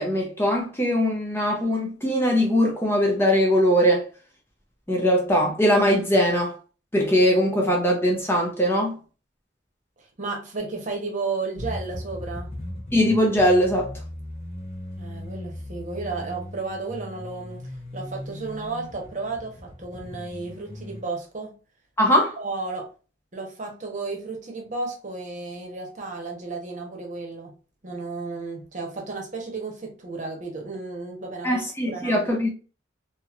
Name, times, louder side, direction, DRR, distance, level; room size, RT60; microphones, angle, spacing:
voice 1, 0.0-4.0 4.9-6.5 6.9-9.0 12.9-13.9 22.0-22.3 31.4-32.5, equal, 10° left, 0.6 m, -21 dB
voice 2, 10.0-12.5 15.0-21.6 22.4-22.9 23.3-27.5 27.8-32.3, right 3 dB, 40° right, 0.9 m, -33 dB
sound 1, 11.6-21.0, left 1 dB, 35° left, 1.1 m, -38 dB
2.9 x 2.7 x 2.4 m
head